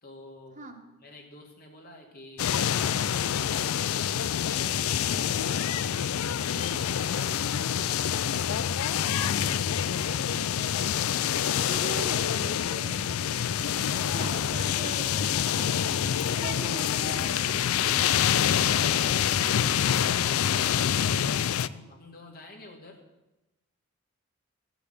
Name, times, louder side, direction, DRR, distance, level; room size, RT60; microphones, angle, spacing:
voice 1, 0.0-0.7 1.0-5.6 6.9-8.9 9.2-10.8 18.6-19.3 19.7-23.0, left 2 dB, 45° left, 1 dB, 2.3 m, -48 dB
sound 1, 2.4-21.7, left 9 dB, 85° left, 0.4 m, -26 dB
voice 2, 6.5-6.9 11.2-13.1 13.6-18.3 18.6-19.6, right 3 dB, 40° right, 3 dB, 1.5 m, -42 dB
14.0 x 6.9 x 7.6 m, 1.0 s
head